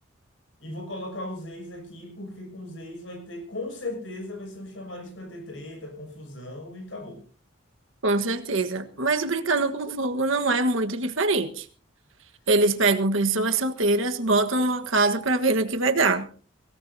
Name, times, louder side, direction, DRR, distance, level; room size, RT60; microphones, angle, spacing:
voice 1, 0.6-7.2, left 1 dB, 65° left, 4 dB, 6.7 m, -37 dB
voice 2, 8.0-11.6 12.5-16.3, right 3 dB, 70° right, 7 dB, 1.5 m, -23 dB
23.5 x 17.5 x 2.8 m, 0.38 s
head